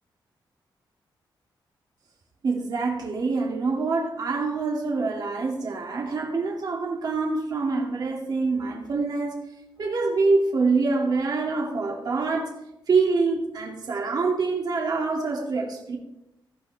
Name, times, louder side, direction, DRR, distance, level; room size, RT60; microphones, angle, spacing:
voice 1, 2.4-9.4 9.8-12.5 12.9-16.0, right 4 dB, 55° right, 0 dB, 2.5 m, -25 dB
17.5 x 14.5 x 3.5 m, 0.90 s
cardioid pair, 110°, 8 cm